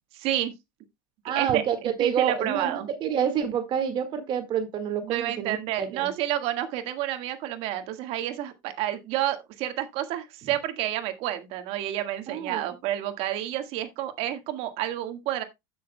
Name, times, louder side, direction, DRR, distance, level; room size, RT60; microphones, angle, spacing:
voice 1, 0.1-0.5 1.3-1.6 2.0-2.9 5.0-15.4, right 13 dB, 60° right, 1.6 m, -29 dB
voice 2, 1.2-6.1 12.3-12.7, right 8 dB, 45° right, 1.8 m, -28 dB
15.5 x 6.3 x 2.2 m
supercardioid pair, 105°, 12 cm